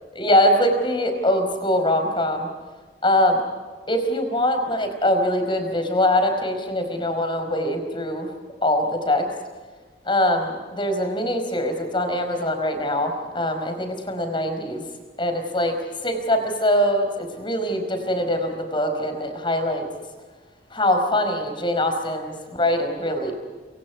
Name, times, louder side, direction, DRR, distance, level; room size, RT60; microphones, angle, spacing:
voice 1, 0.1-2.5 3.0-3.4 3.9-8.3 8.6-9.3 10.0-14.8 15.2-15.7 16.0-19.9 20.7-23.3, left 1 dB, 25° left, 6 dB, 4.9 m, -23 dB
27.5 x 26.0 x 4.8 m, 1.4 s
head